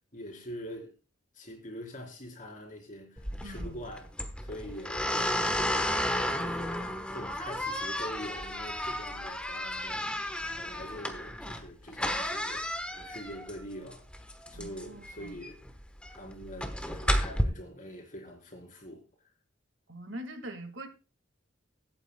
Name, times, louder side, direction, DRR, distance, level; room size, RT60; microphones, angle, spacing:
voice 1, 0.1-0.9 1.3-4.1 4.4-10.1 10.5-12.7 12.9-14.0 14.5-15.6 16.1-19.0, equal, 45° left, 3.8 m, -44 dB
sound 1, 3.2-17.4, left 1 dB, 5° left, 1.2 m, -33 dB
voice 2, 3.4-3.8 14.5-15.4 19.9-20.9, right 1 dB, 75° right, 2.0 m, -43 dB
23.5 x 8.8 x 2.3 m
head